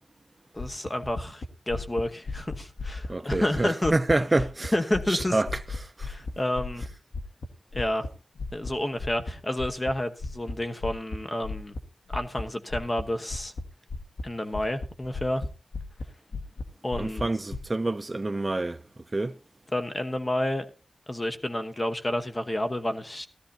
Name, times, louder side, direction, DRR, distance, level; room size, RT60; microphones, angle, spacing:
voice 1, 0.5-3.9 4.7-5.4 6.0-6.8 7.7-8.1 8.5-11.7 12.1-13.5 14.2-15.4 16.8-17.3 19.7-20.7 21.1-23.3, left 1 dB, 25° left, 1.1 m, -30 dB
sound 1, 0.6-4.7 4.9-8.1 8.3-8.7 9.0-9.3 9.6-9.9 10.2-10.6 10.8-11.2 11.4-11.8 12.1-12.4 12.7-13.0 13.3-13.6 13.9-14.2 14.5-15.5 15.7-16.0 16.3-16.6 16.9-17.6, left 3 dB, 80° left, 1.6 m, -34 dB
voice 2, 3.1-4.7 5.1-5.5 6.0-6.1 17.0-18.8 19.1-19.3, right 2 dB, 25° right, 0.5 m, -27 dB
16.0 x 13.0 x 2.8 m
wide cardioid pair, 130°, 0 cm